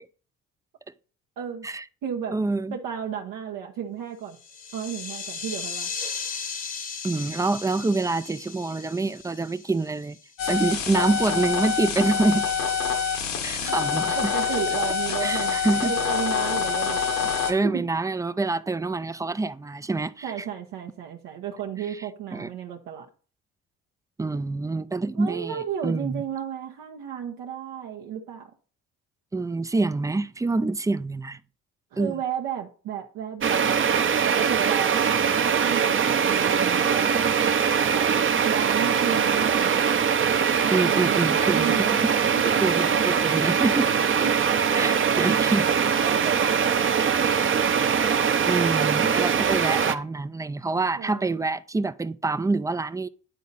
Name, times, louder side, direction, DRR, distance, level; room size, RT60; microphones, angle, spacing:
voice 1, 1.4-1.7 2.0-2.4 2.7-4.4 4.7-5.9 13.6-13.8 14.2-17.9 20.2-23.1 25.1-28.5 31.9-33.9 34.2-37.1 37.9-38.1 38.4-39.9 40.6-42.6 43.9-44.4 44.9-45.5 45.9-47.2 51.0-51.4, right 8 dB, 70° right, 1.0 m, -33 dB
voice 2, 2.3-2.7 7.0-10.2 10.5-12.5 13.4-14.3 15.2-15.9 17.5-20.3 22.3-22.5 24.2-26.2 29.3-31.4 32.0-32.1 40.7-42.1 42.6-43.9 44.7-45.7 48.4-53.1, right 3 dB, 10° right, 0.4 m, -26 dB
sound 1, 4.3-10.4, left 5 dB, 25° left, 0.9 m, -36 dB
sound 2, 10.4-17.5, left 6 dB, 80° left, 1.6 m, -26 dB
sound 3, 33.4-49.9, right 7 dB, 35° right, 0.8 m, -22 dB
10.5 x 4.1 x 4.0 m
supercardioid pair, 75°, 34 cm